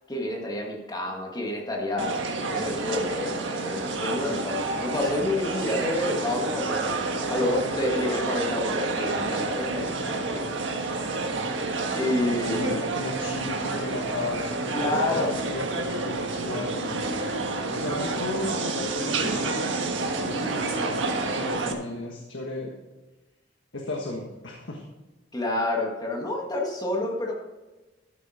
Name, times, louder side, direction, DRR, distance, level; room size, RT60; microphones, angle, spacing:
voice 1, 0.1-2.2 2.5-6.8 7.3-10.5 11.9-12.7 14.7-15.3 25.3-27.3, left 1 dB, 20° left, 0 dB, 1.8 m, -28 dB
sound 1, 2.0-21.7, right 3 dB, 80° right, 1.5 m, -29 dB
voice 2, 5.4-5.7 12.2-17.4 17.7-22.7 23.7-24.9, left 2 dB, 75° left, 0 dB, 1.5 m, -35 dB
13.0 x 8.5 x 4.3 m, 1.1 s
head